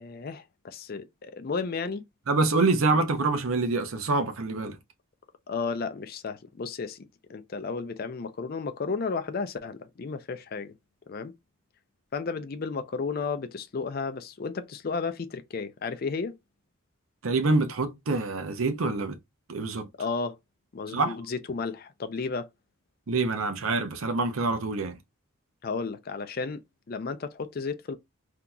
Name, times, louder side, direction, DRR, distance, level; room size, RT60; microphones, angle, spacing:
voice 1, 0.0-2.0 5.5-10.7 11.1-11.3 12.1-16.4 20.0-20.4 20.7-22.5 25.6-26.6 26.9-28.0, left 4 dB, 45° left, 0.4 m, -33 dB
voice 2, 2.3-4.8 17.2-19.2 19.5-19.9 20.9-21.1 23.1-25.0, right 3 dB, 75° right, 0.7 m, -26 dB
3.8 x 2.8 x 2.3 m
head